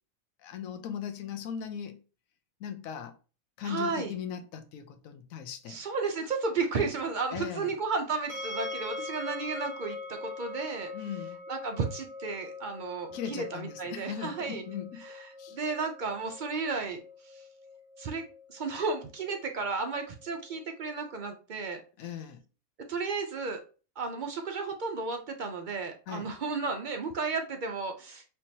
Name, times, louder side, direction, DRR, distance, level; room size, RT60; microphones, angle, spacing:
voice 1, 0.4-2.0 2.6-3.1 3.6-5.8 7.3-7.7 10.9-11.4 13.1-15.0 15.4-15.6 22.0-22.4 26.1-26.3, left 8 dB, 75° left, 1.1 m, -38 dB
voice 2, 3.6-4.1 5.7-10.9 11.5-14.6 15.0-17.5 18.0-18.2 18.5-21.8 22.9-23.6 24.0-28.2, right 4 dB, 70° right, 0.4 m, -33 dB
sound 1, 8.3-21.3, left 2 dB, 20° left, 1.6 m, -43 dB
4.4 x 3.0 x 2.7 m
omnidirectional pair, 1.5 m